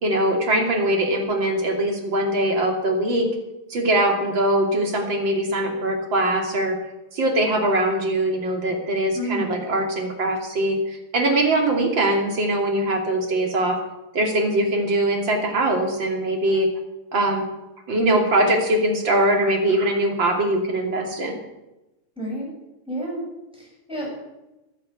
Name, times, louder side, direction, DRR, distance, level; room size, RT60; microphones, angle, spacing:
voice 1, 0.0-3.3 3.7-6.7 7.1-13.8 14.1-16.7 17.1-17.5 17.9-21.4, right 1 dB, 60° right, 2 dB, 3.5 m, -22 dB
voice 2, 9.1-9.5 22.2-22.5 22.9-23.2 23.5-24.1, right 1 dB, ahead, -4 dB, 7.4 m, -30 dB
15.0 x 10.5 x 8.7 m, 1.0 s
omnidirectional pair, 2.4 m